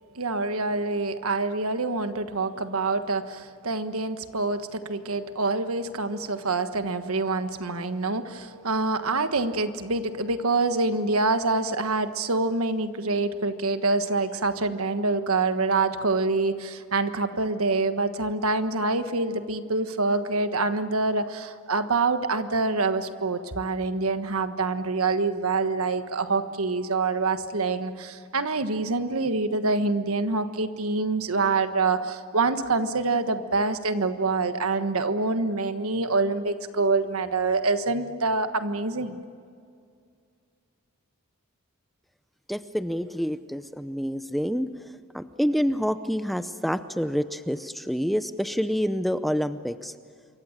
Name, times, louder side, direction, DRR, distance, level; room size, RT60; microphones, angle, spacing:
voice 1, 0.1-39.2, right 3 dB, 85° right, 9 dB, 1.4 m, -26 dB
voice 2, 42.5-44.7 45.1-49.9, equal, ahead, 11 dB, 0.6 m, -27 dB
27.5 x 24.0 x 7.4 m, 2.3 s
head